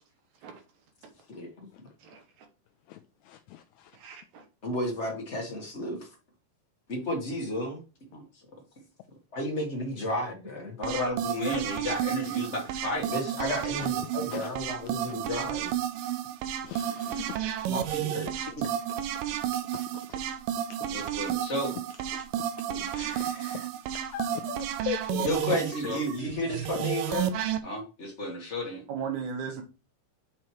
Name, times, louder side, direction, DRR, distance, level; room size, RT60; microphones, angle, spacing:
voice 1, 2.9-4.0 13.8-13.9 14.3-14.5 16.6-17.5 19.3-20.2 21.0-21.1 22.1-22.4 22.7-25.6, left 12 dB, 85° left, 1.6 m, -40 dB
voice 2, 4.0-4.4 28.9-29.6, right 7 dB, 70° right, 2.3 m, -35 dB
voice 3, 4.6-6.1 6.9-7.8 8.1-8.2 9.3-15.7 17.7-18.6 20.9-21.7 25.2-27.3 27.6-28.8, left 1 dB, 35° left, 1.1 m, -32 dB
sound 1, 10.8-27.6, right 11 dB, 85° right, 2.3 m, -32 dB
7.5 x 5.7 x 3.1 m
omnidirectional pair, 3.8 m